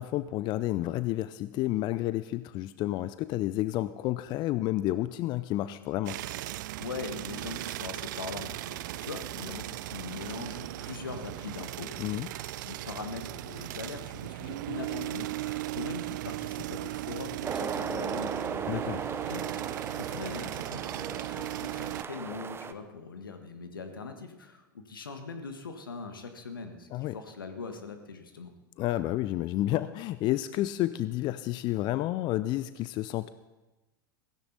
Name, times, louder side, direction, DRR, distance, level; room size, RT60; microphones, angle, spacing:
voice 1, 0.0-6.2 12.0-12.3 18.7-19.0 26.9-27.2 28.8-33.3, left 15 dB, 40° left, 14 dB, 0.5 m, -30 dB
sound 1, 6.1-22.0, right 16 dB, 60° right, 0.5 m, -37 dB
voice 2, 6.8-18.6 19.3-19.5 20.0-28.5, left 4 dB, 80° left, 7 dB, 1.5 m, -41 dB
sound 2, 17.4-22.7, right 6 dB, 20° right, 0.8 m, -37 dB
16.0 x 15.5 x 4.0 m, 1.1 s
figure-of-eight pair, 85°, 11 cm